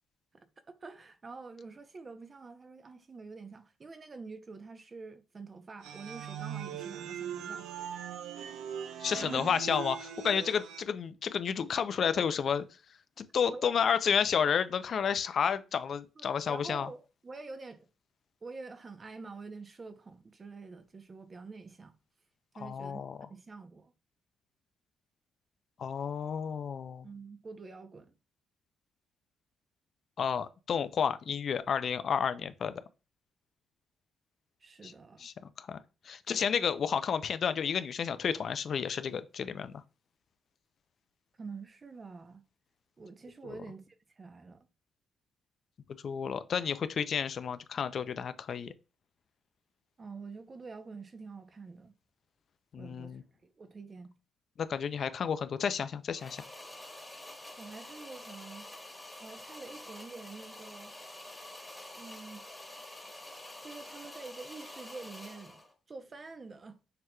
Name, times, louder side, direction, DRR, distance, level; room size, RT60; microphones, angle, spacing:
voice 1, 0.3-7.9 9.1-9.5 13.5-13.7 16.2-17.9 18.4-22.0 22.5-23.0 23.3-23.9 27.0-28.1 34.6-35.3 41.4-42.4 43.0-44.7 50.0-51.9 52.8-54.2 57.6-58.7 59.2-60.9 62.0-62.4 63.6-66.8, right 4 dB, 35° right, 0.6 m, -47 dB
sound 1, 5.8-10.8, right 8 dB, 85° right, 0.5 m, -40 dB
voice 2, 9.0-12.7 13.2-16.9 22.6-23.2 25.8-27.1 30.2-32.7 34.8-34.9 35.2-35.8 36.0-39.7 46.0-48.7 52.7-53.2 54.6-56.5, left 7 dB, 55° left, 0.4 m, -31 dB
sound 2, 56.1-65.7, left 1 dB, 10° left, 1.3 m, -48 dB
6.5 x 2.9 x 2.2 m
cardioid pair, 90°, 0 cm